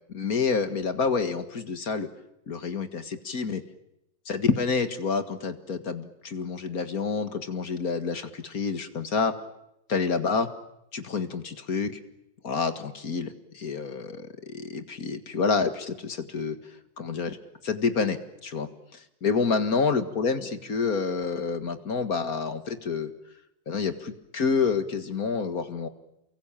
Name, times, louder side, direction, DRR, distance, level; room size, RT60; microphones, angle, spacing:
voice 1, 0.1-2.1 2.5-3.6 4.3-9.3 9.9-10.5 10.9-12.0 12.4-16.6 17.0-17.4 17.6-18.7 19.2-23.1 23.7-25.9, left 5 dB, 55° left, 9 dB, 2.2 m, -28 dB
29.0 x 23.0 x 8.9 m, 0.83 s
omnidirectional pair, 2.0 m